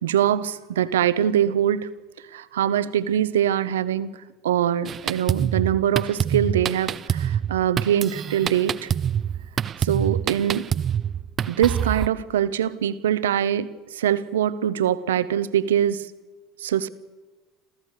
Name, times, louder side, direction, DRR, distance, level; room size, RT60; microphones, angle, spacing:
voice 1, 0.0-1.9 2.3-4.1 4.4-8.9 9.8-10.7 11.5-13.7 13.9-16.0 16.6-16.9, right 10 dB, 85° right, 0.9 m, -23 dB
Drum kit, 4.8-12.1, right 9 dB, 40° right, 0.7 m, -26 dB
27.5 x 14.5 x 6.6 m
hypercardioid pair, 75°, 0 cm